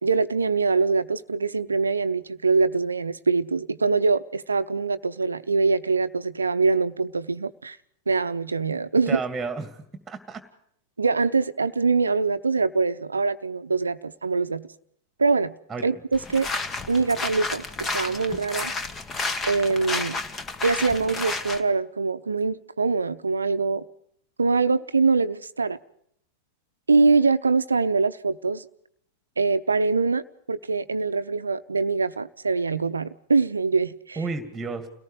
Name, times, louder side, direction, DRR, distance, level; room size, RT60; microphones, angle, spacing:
voice 1, 0.0-7.8 8.1-9.2 11.0-14.7 15.2-15.5 15.8-16.5 16.9-18.7 19.5-20.2 20.6-23.8 24.4-25.8 26.9-28.7 29.4-34.2, right 4 dB, 75° right, 0.8 m, -23 dB
voice 2, 9.1-10.4 15.7-15.9 34.2-34.9, right 4 dB, 10° right, 2.3 m, -32 dB
sound 1, 16.1-21.6, left 3 dB, 20° left, 1.7 m, -31 dB
30.0 x 18.0 x 4.9 m
figure-of-eight pair, 90°, 0 cm